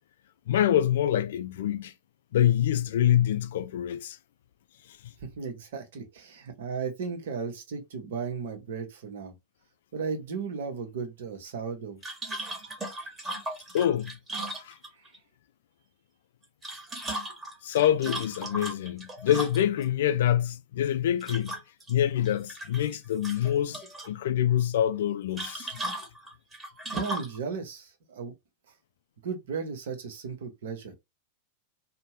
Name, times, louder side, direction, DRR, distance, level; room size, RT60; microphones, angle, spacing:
voice 1, 0.5-1.9 2.3-4.2 4.9-5.1 13.7-14.2 14.6-14.8 17.6-21.6 21.9-25.8, left 11 dB, 60° left, 0.3 m, -26 dB
voice 2, 5.2-9.3 9.9-12.0 26.9-28.3 29.2-30.9, right 5 dB, 60° right, 0.8 m, -35 dB
sound 1, 12.0-15.2 16.4-19.9 21.2-21.9 22.3-23.0 23.2-24.1 25.4-27.4, right 1 dB, 15° right, 1.1 m, -36 dB
2.6 x 2.1 x 3.0 m
figure-of-eight pair, 90°, 0 cm